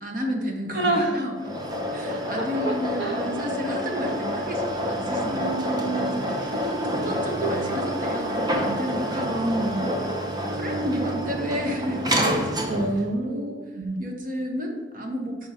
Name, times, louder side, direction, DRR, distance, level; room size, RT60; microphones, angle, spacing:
voice 1, 0.0-1.4 1.9-9.3 9.8-10.1 10.5-12.8 13.2-13.6 14.0-15.5, equal, 50° right, 2 dB, 1.1 m, -32 dB
voice 2, 0.7-1.2 2.4-3.2 5.3-7.1 7.4-7.5 9.2-9.8 12.7-14.0, right 2 dB, 70° right, 2 dB, 1.1 m, -28 dB
sound 1, 1.4-13.1, equal, 25° right, 0.7 m, -28 dB
5.7 x 4.8 x 4.9 m, 1.3 s
head